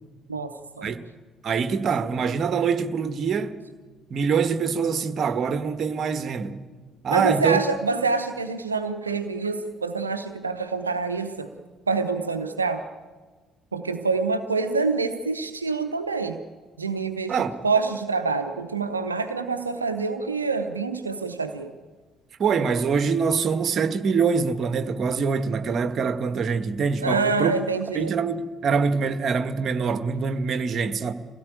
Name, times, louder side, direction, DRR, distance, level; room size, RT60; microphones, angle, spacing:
voice 1, 0.3-1.0 7.1-11.5 11.9-12.8 13.7-16.4 16.8-17.4 17.6-21.7 27.0-28.1, right 4 dB, 85° right, 0.8 m, -26 dB
voice 2, 1.4-3.6 4.1-6.6 7.0-7.6 17.3-17.6 22.4-27.5 27.9-31.1, right 5 dB, 45° right, 1.4 m, -24 dB
24.0 x 17.0 x 8.9 m
figure-of-eight pair, 50°, 0 cm